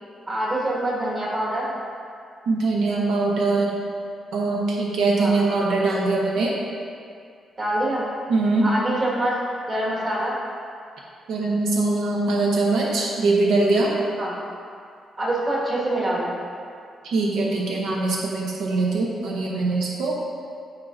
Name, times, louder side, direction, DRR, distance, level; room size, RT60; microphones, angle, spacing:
voice 1, 0.3-1.7 5.2-5.4 7.6-8.0 8.6-9.4 9.7-10.4 14.2-14.3 15.2-16.3, right 1 dB, 30° right, -6 dB, 1.7 m, -25 dB
voice 2, 2.5-3.7 4.3-6.5 8.3-8.7 11.3-13.9 17.0-20.1, right 3 dB, 85° right, -2 dB, 0.9 m, -22 dB
12.5 x 4.6 x 2.6 m, 2.3 s
wide cardioid pair, 160°, 0 cm